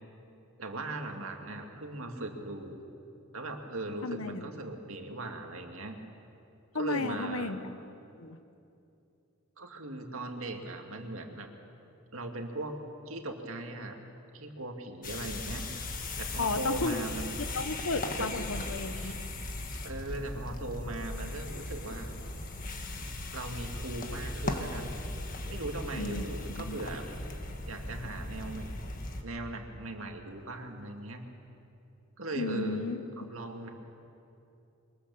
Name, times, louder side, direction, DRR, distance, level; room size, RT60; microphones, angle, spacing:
voice 1, 0.6-2.8 3.3-6.0 6.7-7.5 9.6-11.5 12.1-12.8 13.1-14.0 14.3-15.7 16.2-17.3 17.9-18.3 18.9-19.1 19.8-22.1 23.3-25.0 25.5-27.2 27.7-28.7 29.2-31.2 32.2-32.8 33.2-33.7, right 2 dB, 75° right, 3 dB, 2.2 m, -39 dB
voice 2, 4.0-4.5 6.7-7.6 8.2-8.4 16.4-17.0 17.4-19.2 25.9-26.2 26.7-26.8 32.4-33.3, left 3 dB, 85° left, 10 dB, 1.1 m, -33 dB
sound 1, 15.0-29.2, left 2 dB, 40° left, 1.6 m, -38 dB
23.0 x 20.5 x 7.1 m, 2.8 s
head